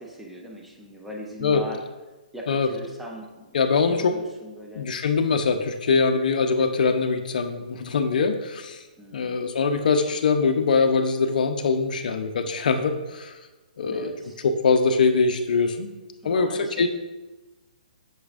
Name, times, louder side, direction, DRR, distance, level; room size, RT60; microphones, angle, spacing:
voice 1, 0.0-1.8 2.3-4.9 9.0-9.4 13.9-14.4 16.2-16.9, equal, 5° right, -1 dB, 0.8 m, -40 dB
voice 2, 3.5-4.2 4.8-8.8 9.1-13.4 13.8-14.1 14.4-15.9 16.2-16.9, left 4 dB, 65° left, 7 dB, 0.7 m, -22 dB
8.2 x 6.4 x 2.5 m, 1.2 s
hypercardioid pair, 155°, 5 cm